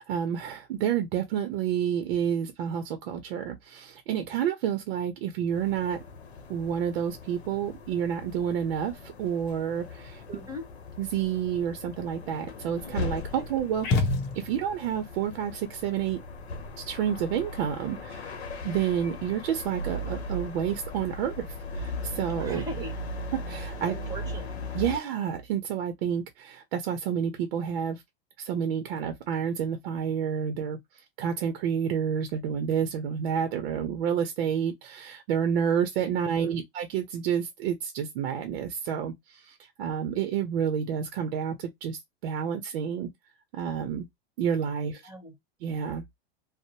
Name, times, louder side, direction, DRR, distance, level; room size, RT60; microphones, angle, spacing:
voice 1, 0.0-6.0 6.5-10.2 11.0-14.1 14.3-16.2 16.8-18.4 18.6-21.5 21.7-22.6 23.3-23.9 24.7-28.0 28.4-30.8 31.2-43.1 43.5-44.1 44.4-45.0 45.6-46.0, right 8 dB, 60° right, 0.6 m, -29 dB
sound 1, 5.5-25.0, left 2 dB, 90° left, 0.7 m, -38 dB
voice 2, 10.3-10.7 22.3-22.9 23.9-24.5 36.4-36.5 44.9-45.4, right 1 dB, 10° right, 1.2 m, -39 dB
sound 2, 13.8-14.9, left 3 dB, 35° left, 0.8 m, -27 dB
2.6 x 2.0 x 2.8 m
hypercardioid pair, 110°, 31 cm